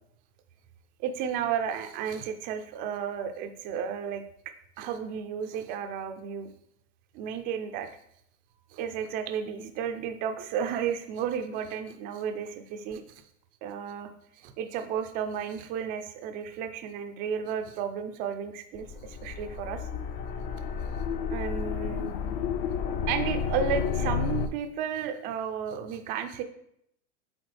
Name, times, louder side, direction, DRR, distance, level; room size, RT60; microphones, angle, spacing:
voice 1, 1.0-4.2 4.8-6.5 7.1-7.9 8.7-13.0 13.6-19.8 21.3-22.1 23.1-26.4, right 7 dB, 25° right, 8 dB, 0.3 m, -33 dB
sound 1, 18.7-24.5, left 6 dB, 40° left, 0.5 m, -31 dB
8.1 x 4.1 x 3.3 m, 0.72 s
supercardioid pair, 135°, 42 cm